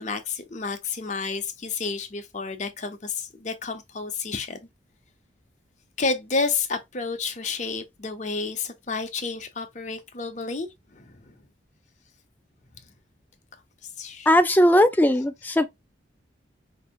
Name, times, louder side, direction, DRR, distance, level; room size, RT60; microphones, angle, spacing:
voice 1, 0.0-4.6 6.0-11.4 14.0-14.3, left 4 dB, 40° left, 0.8 m, -30 dB
voice 2, 14.3-15.7, left 1 dB, 10° left, 0.3 m, -18 dB
4.4 x 3.3 x 2.5 m
head